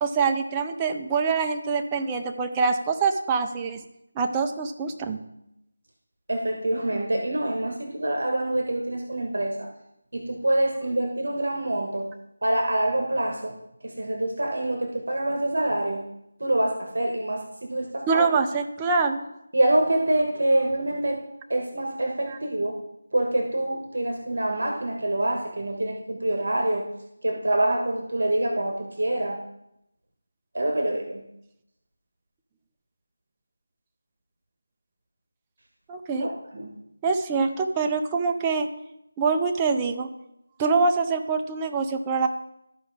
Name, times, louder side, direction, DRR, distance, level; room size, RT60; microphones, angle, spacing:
voice 1, 0.0-3.8 4.2-5.2 18.1-19.3 22.3-22.4 35.9-36.3 37.0-38.7 39.2-40.1 40.6-42.3, right 4 dB, 10° right, 4 dB, 0.4 m, -25 dB
voice 2, 6.3-9.7 10.1-12.1 12.4-13.5 13.8-16.0 16.4-18.3 19.5-21.2 21.5-22.7 23.1-26.9 27.2-29.4 30.5-31.2 36.2-36.7, right 1 dB, 65° right, 2 dB, 1.4 m, -26 dB
13.5 x 4.9 x 3.6 m, 0.83 s
figure-of-eight pair, 175°, 0 cm